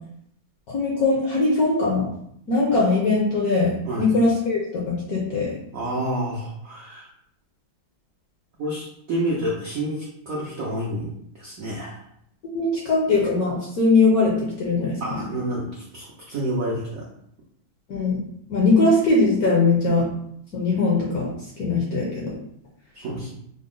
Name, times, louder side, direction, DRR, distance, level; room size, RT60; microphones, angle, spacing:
voice 1, 0.7-2.1 2.5-3.7 4.0-5.5 12.5-15.2 17.9-18.2 18.5-20.1 20.5-21.3 21.6-22.3, left 3 dB, 65° left, -3 dB, 0.9 m, -20 dB
voice 2, 3.9-4.2 5.7-7.1 8.6-12.0 15.0-17.1 22.9-23.3, right 1 dB, 80° right, -4 dB, 0.7 m, -29 dB
3.9 x 2.0 x 3.7 m, 0.72 s
omnidirectional pair, 2.3 m